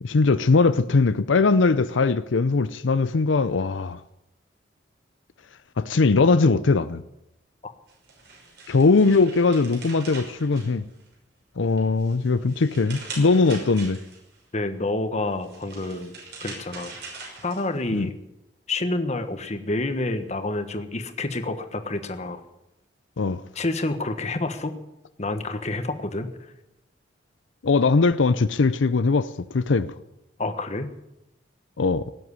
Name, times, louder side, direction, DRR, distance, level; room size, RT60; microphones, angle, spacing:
voice 1, 0.0-4.0 5.8-7.0 8.7-10.9 11.6-14.0 17.9-18.1 23.2-23.4 27.6-29.9 31.8-32.0, left 4 dB, 90° left, 0.6 m, -20 dB
sound 1, 7.9-11.2 11.6-14.4 15.3-18.0, right 3 dB, 65° right, 5.9 m, -42 dB
voice 2, 14.5-16.1 16.4-16.9 17.4-18.2 18.7-22.4 23.5-24.8 25.2-26.3 30.4-30.9, left 2 dB, 40° left, 1.4 m, -28 dB
18.0 x 7.9 x 9.7 m
head